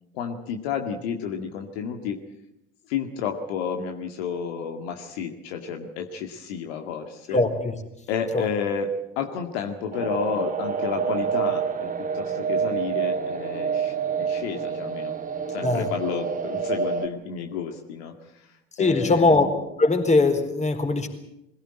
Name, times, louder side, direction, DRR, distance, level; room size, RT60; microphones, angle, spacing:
voice 1, 0.1-2.2 2.9-7.4 8.1-15.1 15.5-19.4, left 6 dB, 70° left, 4 dB, 2.1 m, -31 dB
voice 2, 7.3-7.7 8.3-8.5 15.6-15.9 18.8-19.5 19.8-21.1, left 3 dB, 20° left, 5 dB, 4.4 m, -21 dB
sound 1, 9.9-17.1, right 6 dB, 25° right, 2.1 m, -28 dB
22.0 x 17.0 x 9.0 m, 0.86 s
hypercardioid pair, 65°, 32 cm